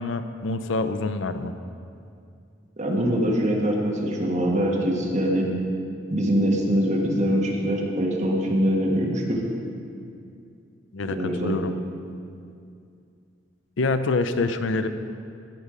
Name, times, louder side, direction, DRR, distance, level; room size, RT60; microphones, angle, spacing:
voice 1, 0.0-1.5 10.9-11.7 13.8-14.9, left 3 dB, 75° left, 10 dB, 0.5 m, -26 dB
voice 2, 2.8-5.5 6.1-9.4 11.1-11.6, equal, 40° right, -1 dB, 1.5 m, -23 dB
15.5 x 5.4 x 4.9 m, 2.4 s
head